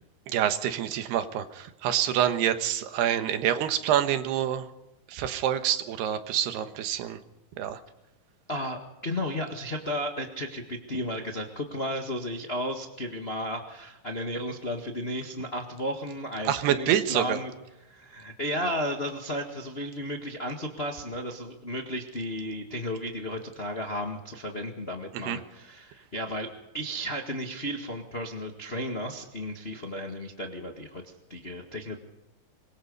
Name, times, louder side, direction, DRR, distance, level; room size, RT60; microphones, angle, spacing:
voice 1, 0.3-4.7 5.1-7.2 7.6-7.8 16.4-17.4 25.3-25.4, right 10 dB, 90° right, 9 dB, 3.4 m, -27 dB
voice 2, 8.5-17.5 17.8-26.5 26.7-31.0 31.3-32.0, equal, 75° left, 3 dB, 0.5 m, -34 dB
25.0 x 22.0 x 5.4 m, 0.95 s
omnidirectional pair, 4.5 m